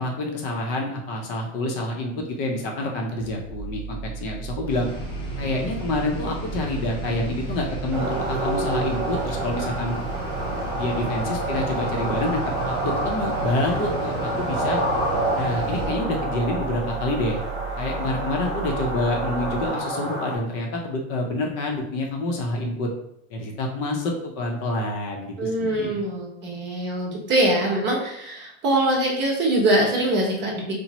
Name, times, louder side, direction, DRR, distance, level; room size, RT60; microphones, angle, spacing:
voice 1, 0.0-4.9 5.4-10.0 10.7-12.4 12.7-14.8 15.3-17.4 17.8-22.9 23.3-26.0, left 2 dB, 45° left, 0 dB, 0.6 m, -27 dB
sound 1, 3.2-19.7, right 5 dB, 5° right, 0.4 m, -37 dB
sound 2, 4.7-15.9, right 1 dB, 15° left, 0.8 m, -34 dB
sound 3, 7.9-20.4, right 2 dB, 55° right, 1.0 m, -28 dB
voice 2, 25.4-30.7, right 1 dB, 25° right, -2 dB, 0.8 m, -23 dB
2.9 x 2.1 x 2.8 m, 0.77 s
supercardioid pair, 130°, 41 cm